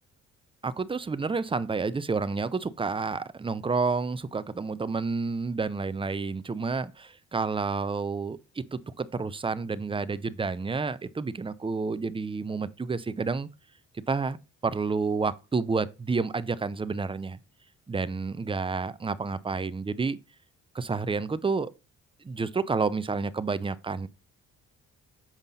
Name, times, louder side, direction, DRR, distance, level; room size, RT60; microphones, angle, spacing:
voice 1, 0.6-13.5 13.9-14.4 14.6-17.4 17.9-20.2 20.7-21.7 22.2-24.1, right 4 dB, 15° right, 0.6 m, -30 dB
7.4 x 5.1 x 4.1 m
cardioid pair, 90°, 30 cm